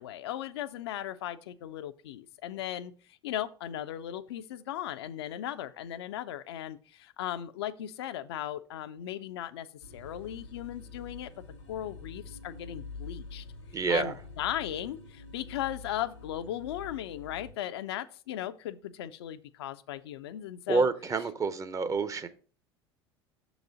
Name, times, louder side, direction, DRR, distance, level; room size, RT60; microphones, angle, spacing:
voice 1, 0.0-9.7 9.9-11.3 11.7-13.5 13.9-20.9, left 12 dB, 70° left, 11 dB, 0.4 m, -37 dB
sound 1, 9.8-17.5, left 3 dB, 90° left, 0.9 m, -46 dB
voice 2, 13.7-14.1 20.7-22.3, right 4 dB, 25° right, 12 dB, 0.6 m, -28 dB
6.5 x 4.0 x 4.9 m, 0.42 s
figure-of-eight pair, 75°, 14 cm